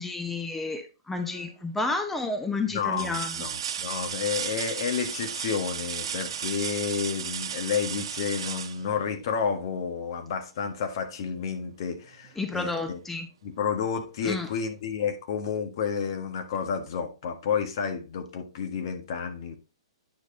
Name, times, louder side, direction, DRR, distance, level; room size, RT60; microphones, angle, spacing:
voice 1, 0.0-3.4 12.4-13.3 14.2-14.5, left 3 dB, 5° left, 1.0 m, -31 dB
sound 1, 1.2-1.7 2.2-2.3 2.9-9.6 11.4-11.5 12.0-13.0 14.3-14.4, right 8 dB, 70° right, 1.2 m, -35 dB
voice 2, 2.7-13.0 13.4-19.6, left 6 dB, 55° left, 1.5 m, -30 dB
9.2 x 5.2 x 3.8 m
hypercardioid pair, 135°, 3 cm